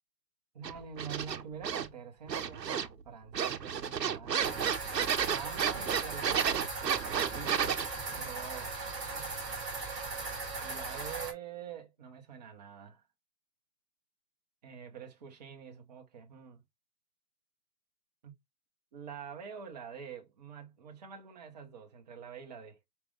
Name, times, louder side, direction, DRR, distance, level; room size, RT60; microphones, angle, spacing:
voice 1, 0.5-4.6 5.3-6.7 7.3-7.9 8.1-8.8 9.0-9.4 10.6-13.0 14.6-16.6 18.2-18.3 18.9-22.8, right 7 dB, 25° right, 1.0 m, -46 dB
sound 1, 0.6-1.9 2.3-3.0 3.3-7.9, right 8 dB, 90° right, 0.8 m, -32 dB
sound 2, 4.4-11.3, right 3 dB, 10° right, 1.8 m, -38 dB
5.2 x 2.8 x 3.6 m
hypercardioid pair, 155°, 48 cm